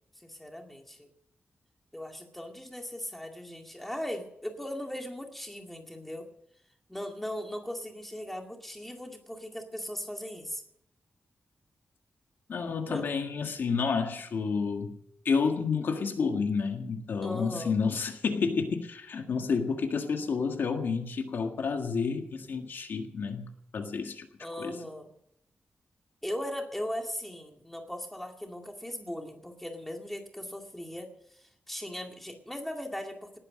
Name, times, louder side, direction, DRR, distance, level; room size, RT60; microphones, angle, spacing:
voice 1, 0.2-1.1 1.9-6.3 6.9-10.6 12.9-13.1 17.2-17.8 24.4-25.1 26.2-33.4, left 1 dB, 5° left, 3 dB, 2.1 m, -38 dB
voice 2, 12.5-15.0 15.3-24.3 24.6-24.8, left 5 dB, 65° left, 4 dB, 1.7 m, -30 dB
19.0 x 9.9 x 6.4 m, 0.75 s
wide cardioid pair, 180°, 4 cm